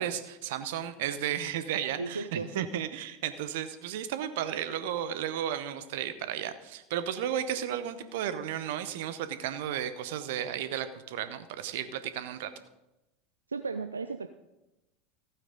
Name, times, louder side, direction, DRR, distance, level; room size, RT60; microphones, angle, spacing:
voice 1, 0.0-12.5, right 10 dB, 60° right, 12 dB, 0.9 m, -34 dB
voice 2, 2.0-2.9 13.5-14.3, right 4 dB, 85° right, 9 dB, 0.4 m, -35 dB
15.5 x 9.0 x 4.0 m, 0.97 s
figure-of-eight pair, 80°, 0 cm